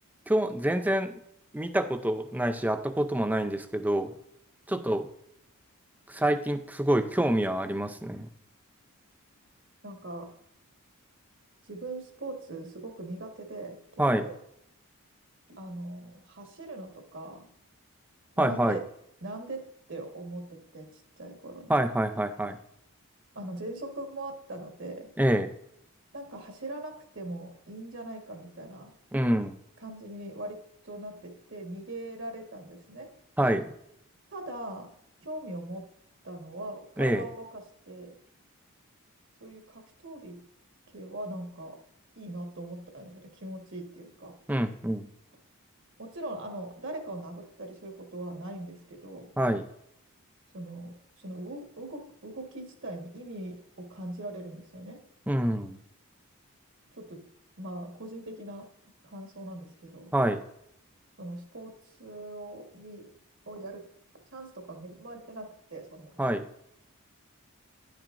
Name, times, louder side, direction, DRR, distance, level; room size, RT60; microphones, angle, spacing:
voice 1, 0.3-1.1 1.5-4.1 4.7-5.1 6.1-8.3 14.0-14.2 18.4-18.8 21.7-22.6 25.2-25.5 29.1-29.6 33.4-33.6 37.0-37.2 44.5-45.1 49.4-49.6 55.3-55.8 60.1-60.4 66.2-66.5, right 1 dB, 5° right, 9 dB, 0.4 m, -26 dB
voice 2, 9.8-10.3 11.6-14.4 15.6-17.5 18.3-18.8 19.2-19.6 19.9-21.7 23.3-25.1 26.1-28.9 29.8-30.6 30.8-33.1 34.3-34.9 35.2-35.9 36.2-38.1 39.4-40.4 40.9-41.8 42.2-44.3 46.0-49.3 50.5-55.0 56.9-57.2 57.6-58.7 59.0-60.1 61.2-63.1 63.5-63.8 64.3-66.3, right 1 dB, 55° right, 4 dB, 1.4 m, -41 dB
10.5 x 8.8 x 2.5 m, 0.75 s
head